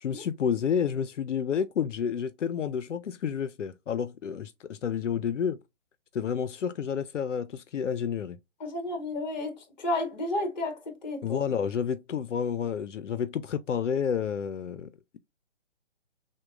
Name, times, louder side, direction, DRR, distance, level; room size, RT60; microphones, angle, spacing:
voice 1, 0.0-5.6 6.1-8.4 11.2-15.2, left 7 dB, 90° left, 0.5 m, -30 dB
voice 2, 8.6-11.4, left 2 dB, 40° left, 1.3 m, -32 dB
6.3 x 2.2 x 2.4 m
figure-of-eight pair, 150°, 35 cm